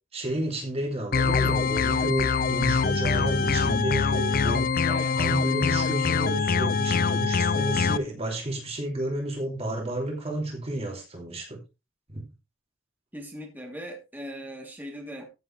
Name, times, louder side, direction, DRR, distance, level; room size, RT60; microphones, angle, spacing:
voice 1, 0.1-4.7 5.1-11.6 12.1-12.2, right 1 dB, 30° right, 2.9 m, -31 dB
sound 1, 1.1-8.0, left 5 dB, 45° left, 0.6 m, -24 dB
voice 2, 4.9-5.2 13.1-15.3, equal, 10° right, 3.1 m, -39 dB
15.0 x 7.5 x 3.3 m
head